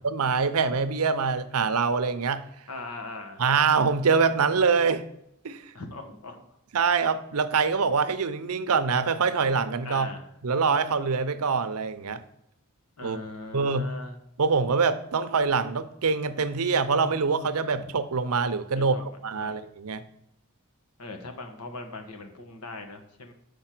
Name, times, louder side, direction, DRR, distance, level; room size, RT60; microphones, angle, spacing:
voice 1, 0.0-2.4 3.4-5.0 5.4-5.7 6.7-10.1 10.4-12.2 13.0-13.2 13.5-13.9 14.4-19.0 19.2-20.1, right 5 dB, 80° right, 11 dB, 0.6 m, -24 dB
voice 2, 2.7-3.4 5.7-6.4 9.8-10.3 13.0-14.2 17.6-17.7 18.8-19.0 19.3-19.5 21.0-23.3, left 2 dB, 90° left, 5 dB, 1.3 m, -40 dB
6.7 x 5.3 x 6.0 m, 0.76 s
head